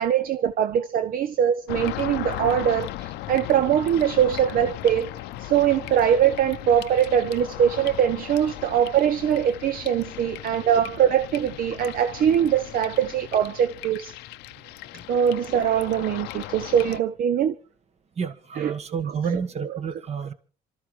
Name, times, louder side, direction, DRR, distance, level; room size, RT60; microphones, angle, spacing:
voice 1, 0.0-5.1 5.4-14.2 15.1-17.5 18.6-18.7 19.3-19.4, right 9 dB, 60° right, 0.7 m, -22 dB
sound 1, 1.7-17.0, left 15 dB, 90° left, 0.6 m, -37 dB
voice 2, 18.2-20.3, right 6 dB, 40° right, 1.4 m, -30 dB
27.5 x 13.0 x 3.2 m
cardioid pair, 110°, 17 cm